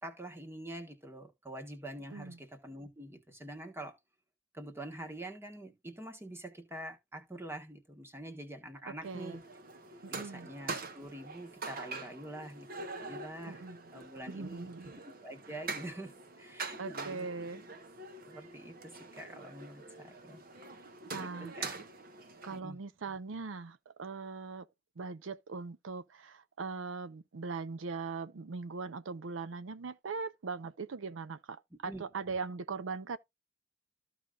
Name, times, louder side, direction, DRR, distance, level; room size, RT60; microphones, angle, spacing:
voice 1, 0.0-4.0 4.5-9.4 10.1-14.7 15.1-17.3 18.3-20.4 21.1-21.7 22.5-22.8 31.8-32.0, right 1 dB, 15° right, 1.4 m, -46 dB
voice 2, 8.9-9.4 10.0-10.5 13.5-13.8 14.3-15.0 16.7-17.6 21.1-21.7 22.4-24.7 25.0-33.2, right 4 dB, 85° right, 0.6 m, -40 dB
sound 1, 9.0-22.6, right 3 dB, 50° right, 1.1 m, -44 dB
14.0 x 4.9 x 2.5 m
head